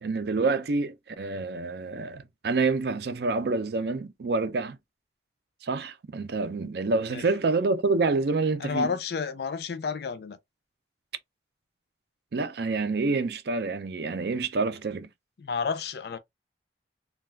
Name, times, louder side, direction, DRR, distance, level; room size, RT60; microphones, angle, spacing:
voice 1, 0.0-4.8 5.6-8.9 12.3-15.1, right 3 dB, 60° right, 0.4 m, -27 dB
voice 2, 8.6-10.4 15.4-16.2, left 5 dB, 60° left, 0.4 m, -30 dB
2.3 x 2.3 x 3.2 m
head